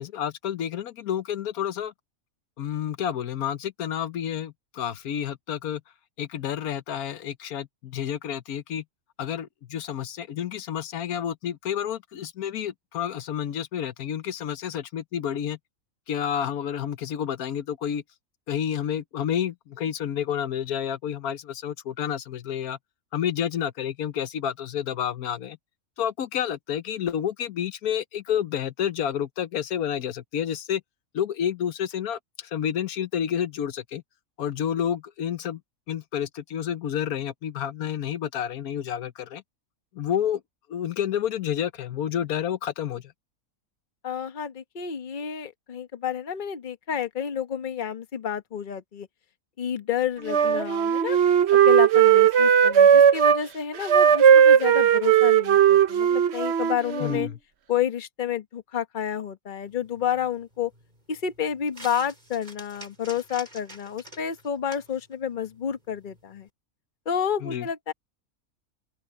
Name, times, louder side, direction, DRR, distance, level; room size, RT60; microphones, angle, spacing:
voice 1, 0.0-1.9 2.6-5.8 6.2-8.8 9.2-15.6 16.1-18.0 18.5-22.8 23.1-25.6 26.0-30.8 31.1-34.0 34.4-35.6 35.9-39.4 39.9-40.4 40.7-43.1 57.0-57.4 67.4-67.7, left 9 dB, 85° left, 1.3 m, -29 dB
voice 2, 44.0-49.1 49.6-51.2 51.5-57.3 57.7-60.7 61.1-66.5 67.1-67.9, left 8 dB, 35° left, 1.1 m, -30 dB
Wind instrument woodwind instrument, 50.3-53.4 53.8-57.3, right 8 dB, 55° right, 1.0 m, -17 dB
sound 1, 59.6-66.5, right 1 dB, 30° right, 5.6 m, -49 dB
open air
omnidirectional pair, 1.5 m